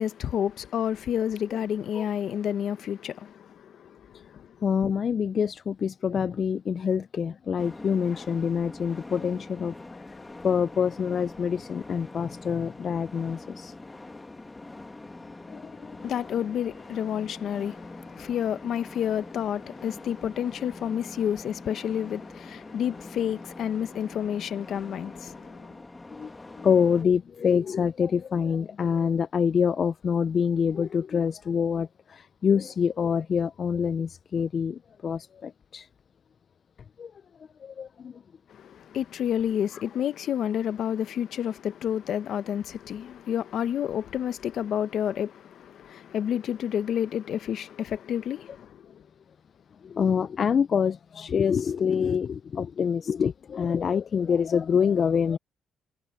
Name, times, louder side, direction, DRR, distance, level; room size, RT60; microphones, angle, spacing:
voice 1, 0.0-4.5 16.0-25.6 38.5-48.9, left 9 dB, 70° left, 1.0 m, -30 dB
voice 2, 4.6-13.7 15.5-16.0 26.1-35.9 37.0-37.1 37.6-38.2 39.7-39.8 49.8-55.4, left 7 dB, 50° left, 0.3 m, -26 dB
sound 1, 7.6-27.1, left 2 dB, 20° left, 1.7 m, -44 dB
cardioid pair, 90°, 0 cm